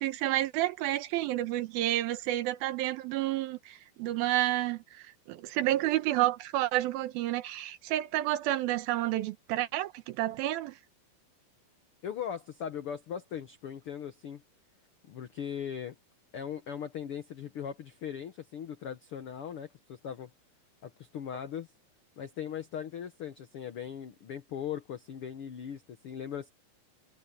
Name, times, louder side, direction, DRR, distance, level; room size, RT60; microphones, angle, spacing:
voice 1, 0.0-10.8, right 15 dB, 85° right, 2.8 m, -30 dB
voice 2, 12.0-14.4 15.1-15.9 16.3-20.3 20.8-21.7 22.2-26.5, left 8 dB, 80° left, 1.2 m, -39 dB
omnidirectional pair, 4.2 m